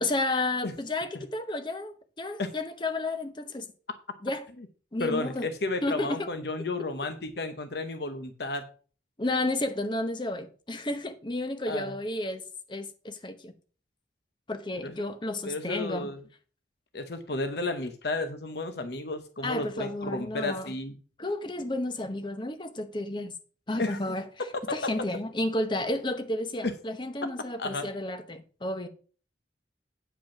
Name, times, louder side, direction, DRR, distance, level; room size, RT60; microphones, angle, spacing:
voice 1, 0.0-3.7 4.2-4.4 4.9-5.5 5.8-6.3 9.2-13.5 14.5-16.1 19.4-20.7 21.2-23.3 23.7-24.3 24.7-28.9, left 2 dB, 25° left, 0.8 m, -32 dB
voice 2, 5.0-8.6 11.7-11.9 14.8-15.0 15.4-16.2 16.9-21.0 23.8-24.0 26.6-26.7 27.2-27.3 27.6-27.9, left 2 dB, 65° left, 0.9 m, -32 dB
9.0 x 5.2 x 5.9 m
head